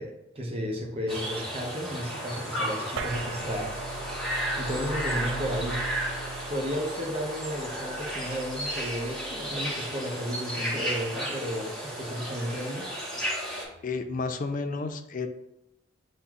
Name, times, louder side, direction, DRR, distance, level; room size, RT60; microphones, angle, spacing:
voice 1, 0.0-3.8 4.6-5.8 6.5-12.9, equal, 30° right, 0 dB, 0.8 m, -33 dB
sound 1, 0.5-14.4, left 1 dB, 85° left, 1.1 m, -52 dB
sound 2, 1.1-13.6, equal, ahead, 1.2 m, -34 dB
sound 3, 3.0-9.7, right 3 dB, 80° right, 0.4 m, -39 dB
voice 2, 13.8-15.3, left 4 dB, 45° left, 7 dB, 0.4 m, -32 dB
7.5 x 2.7 x 2.4 m, 0.86 s
head